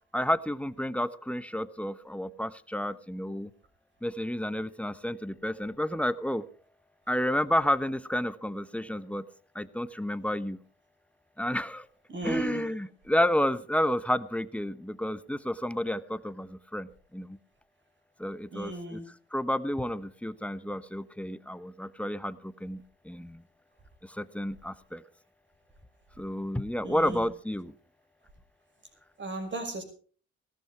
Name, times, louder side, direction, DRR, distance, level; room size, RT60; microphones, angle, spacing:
voice 1, 0.1-3.5 4.0-6.4 7.1-9.2 9.5-10.6 11.4-11.9 12.2-17.4 18.2-19.0 19.3-23.4 24.0-25.0 26.2-27.7, left 1 dB, 5° left, 13 dB, 1.0 m, -31 dB
voice 2, 12.1-12.6 18.5-19.1 26.8-27.3 29.2-29.8, right 2 dB, 40° right, 5 dB, 6.0 m, -35 dB
18.0 x 13.0 x 4.7 m, 0.42 s
cardioid pair, 90°, 30 cm